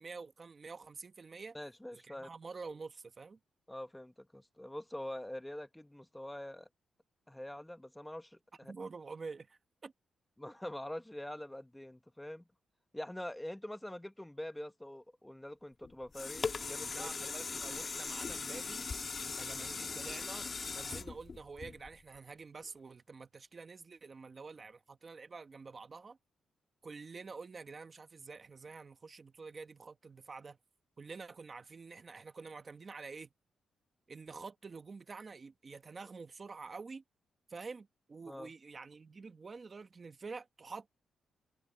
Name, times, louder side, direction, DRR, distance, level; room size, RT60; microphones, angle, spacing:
voice 1, 0.0-1.6 1.9-3.4 8.7-9.9 16.9-18.9 19.3-20.5 20.7-26.2 26.8-30.6 31.0-33.3 34.1-37.0 37.5-40.9, right 4 dB, 30° right, 1.2 m, -48 dB
voice 2, 1.5-2.3 3.7-6.7 7.3-8.7 10.4-12.5 12.9-17.1 38.3-38.5, left 1 dB, 5° left, 1.1 m, -45 dB
sound 1, 15.8-22.2 22.7-22.8, left 4 dB, 30° left, 1.4 m, -40 dB
wide cardioid pair, 150°, 0 cm